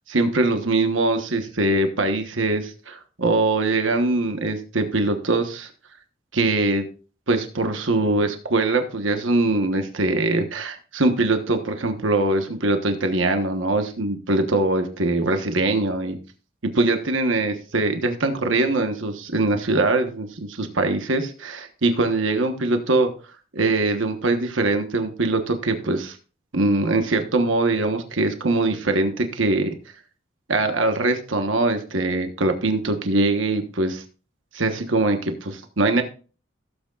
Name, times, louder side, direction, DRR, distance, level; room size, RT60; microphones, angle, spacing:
voice 1, 0.1-5.7 6.3-6.8 7.3-16.2 16.8-23.1 23.5-26.2 26.5-29.7 30.5-34.0 34.5-36.0, right 2 dB, 85° right, 6 dB, 1.3 m, -22 dB
16.5 x 8.0 x 2.4 m, 0.37 s
head